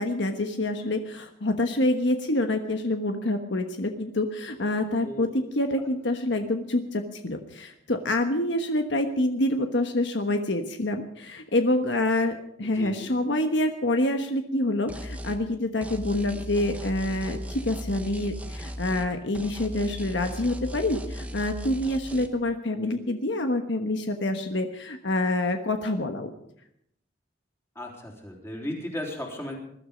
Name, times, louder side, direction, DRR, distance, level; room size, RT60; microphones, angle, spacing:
voice 1, 0.0-5.3 5.5-26.3, left 1 dB, 65° left, 6 dB, 1.3 m, -27 dB
voice 2, 12.6-13.2 27.8-29.6, left 1 dB, 15° left, 0 dB, 3.7 m, -36 dB
sound 1, 14.9-15.4 15.8-19.1 19.3-22.3, equal, 10° right, 1.0 m, -37 dB
21.0 x 12.5 x 5.2 m, 0.75 s
head